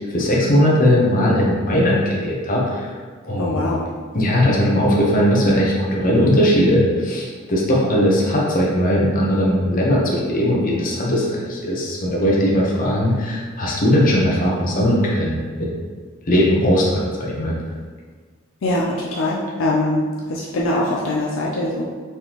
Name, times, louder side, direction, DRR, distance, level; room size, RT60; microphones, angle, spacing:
voice 1, 0.1-2.9 3.2-3.7 4.1-15.7 16.3-17.5, equal, 45° left, -4 dB, 1.0 m, -18 dB
voice 2, 3.4-3.9 18.6-21.8, left 1 dB, 75° left, -3 dB, 0.5 m, -22 dB
4.4 x 3.6 x 3.0 m, 1.5 s
head